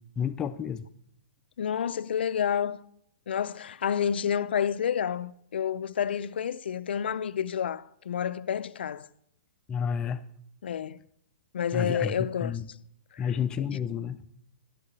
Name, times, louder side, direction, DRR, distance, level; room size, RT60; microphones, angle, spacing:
voice 1, 0.2-0.9 9.7-10.3 11.7-12.1 12.4-12.6 13.2-14.2, left 7 dB, 15° left, 0.4 m, -30 dB
voice 2, 1.6-2.8 3.3-9.1 10.6-11.0 11.5-12.5 13.1-13.3, left 8 dB, 80° left, 0.4 m, -29 dB
12.5 x 10.5 x 3.2 m
hypercardioid pair, 165°, 6 cm